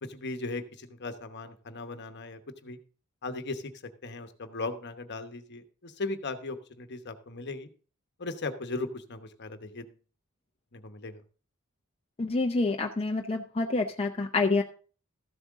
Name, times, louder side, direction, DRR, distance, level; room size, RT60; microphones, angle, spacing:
voice 1, 0.0-2.8 3.2-3.7 4.0-7.7 8.2-9.9 10.7-11.2, left 3 dB, 50° left, 8 dB, 1.1 m, -37 dB
voice 2, 12.2-14.6, left 3 dB, 25° left, 3 dB, 0.6 m, -27 dB
14.0 x 7.7 x 3.6 m, 0.40 s
head